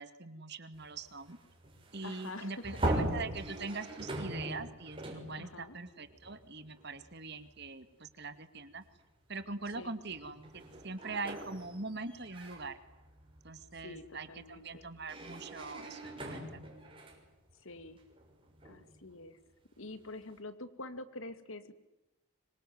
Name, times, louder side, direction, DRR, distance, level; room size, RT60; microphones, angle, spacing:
voice 1, 0.0-1.4 1.9-8.8 9.3-12.8 13.4-16.5, right 3 dB, 50° right, 10 dB, 2.4 m, -42 dB
sound 1, 0.7-7.1 7.5-7.7 8.8-8.9 9.4-19.1, right 1 dB, 25° right, 6.5 m, -41 dB
voice 2, 2.0-2.6 5.4-5.8 9.8-9.9 13.8-14.9 17.6-18.0 18.6-19.4 19.8-21.7, left 2 dB, 70° left, 11 dB, 2.4 m, -46 dB
26.0 x 24.0 x 9.5 m, 0.98 s
head